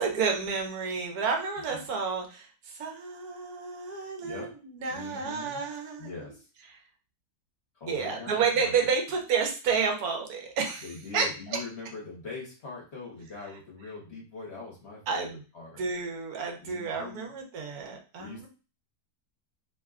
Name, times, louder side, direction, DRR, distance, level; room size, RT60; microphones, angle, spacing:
voice 1, 0.0-6.1 7.9-10.9 11.1-11.3 15.1-15.4 15.8-18.5, right 5 dB, 80° right, 2 dB, 1.2 m, -30 dB
voice 2, 4.2-4.5 4.9-5.7 6.0-6.5 7.7-8.9 10.8-15.8 16.6-17.3 18.2-18.5, left 4 dB, 50° left, -2 dB, 1.2 m, -42 dB
3.0 x 2.2 x 3.5 m, 0.34 s
omnidirectional pair, 1.6 m